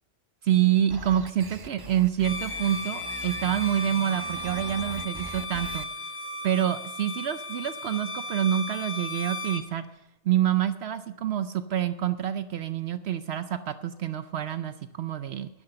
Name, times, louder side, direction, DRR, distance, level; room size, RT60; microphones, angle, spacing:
voice 1, 0.4-5.9 6.4-9.9 10.2-15.5, right 11 dB, 70° right, 11 dB, 0.9 m, -27 dB
sound 1, 0.9-5.9, right 3 dB, 30° right, 0.5 m, -42 dB
Bowed string instrument, 2.2-9.7, left 1 dB, 70° left, 1.6 m, -35 dB
11.0 x 10.5 x 6.6 m, 0.93 s
omnidirectional pair, 1.2 m